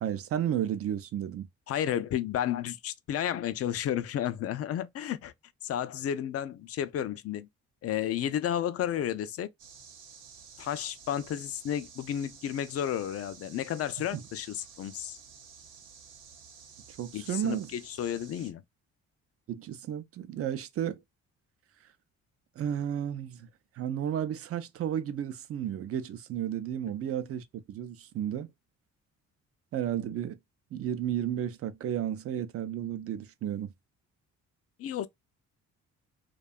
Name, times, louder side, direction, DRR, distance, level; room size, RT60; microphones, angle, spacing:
voice 1, 0.0-1.5 14.1-14.2 17.0-17.7 19.5-21.0 22.6-23.5 23.8-28.5 29.7-30.4 30.7-33.7, right 10 dB, 50° right, 0.5 m, -33 dB
voice 2, 1.7-5.3 5.6-7.5 7.8-9.5 10.6-15.2 17.1-18.6 34.8-35.1, left 10 dB, 55° left, 0.4 m, -32 dB
sound 1, 9.6-18.5, right 6 dB, 85° right, 0.8 m, -52 dB
2.7 x 2.3 x 2.2 m
cardioid pair, 90°, 30 cm